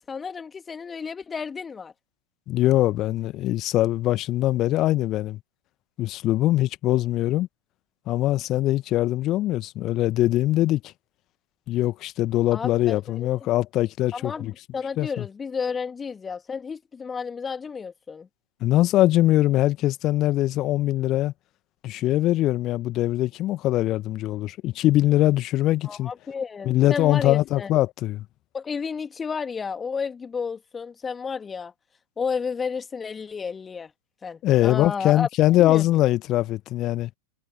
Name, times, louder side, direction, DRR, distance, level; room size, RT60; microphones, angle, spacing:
voice 1, 0.0-1.9 12.5-13.5 14.1-18.3 25.8-27.7 28.5-31.7 32.2-33.9 34.2-35.3 35.6-36.0, left 5 dB, 15° left, 2.5 m, -32 dB
voice 2, 2.5-5.4 6.0-7.5 8.1-10.8 11.7-14.5 15.0-15.3 18.6-21.3 21.8-26.1 26.6-28.2 34.4-37.1, left 15 dB, 35° left, 1.6 m, -22 dB
figure-of-eight pair, 90°, 0 cm